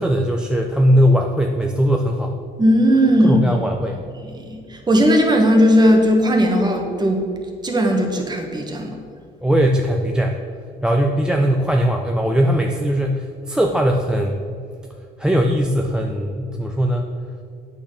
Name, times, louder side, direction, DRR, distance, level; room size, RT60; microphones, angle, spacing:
voice 1, 0.0-2.4 3.2-4.0 9.4-10.4 10.8-14.4 15.2-17.1, equal, 5° right, 2 dB, 0.6 m, -19 dB
voice 2, 2.6-3.4 4.3-7.2 7.6-8.9, equal, 25° right, 2 dB, 1.5 m, -16 dB
8.4 x 6.7 x 5.7 m, 2.2 s
cardioid pair, 110°, 17 cm